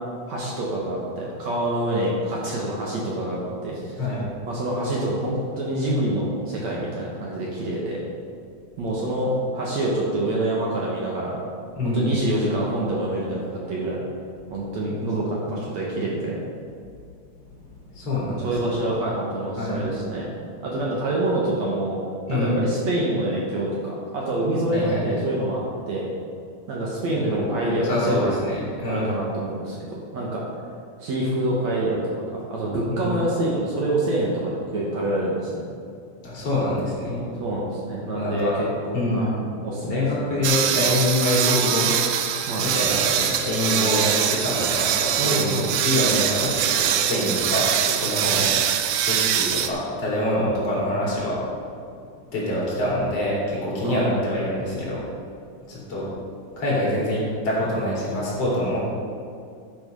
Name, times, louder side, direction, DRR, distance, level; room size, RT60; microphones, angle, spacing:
voice 1, 0.3-3.9 4.5-8.0 8.8-11.4 11.8-14.0 14.5-16.4 18.4-20.3 20.6-22.0 22.3-26.1 26.7-28.4 28.9-29.8 30.1-30.4 31.0-35.7 37.4-39.3 39.6-40.3 42.5-42.7 45.2-45.7 53.8-54.0, right 1 dB, 60° right, -4 dB, 2.4 m, -26 dB
voice 2, 4.0-4.3 11.8-12.2 17.7-18.8 19.6-19.9 22.3-22.6 24.7-25.0 27.1-29.1 32.9-33.2 36.2-37.3 38.1-38.5 38.9-39.4 39.9-41.9 42.3-51.4 52.3-55.0 55.7-56.1 56.5-58.8, left 1 dB, 45° left, -6 dB, 3.9 m, -25 dB
sound 1, 40.4-49.7, right 9 dB, 80° right, 2.2 m, -23 dB
13.0 x 7.0 x 5.3 m, 2.3 s
omnidirectional pair, 4.1 m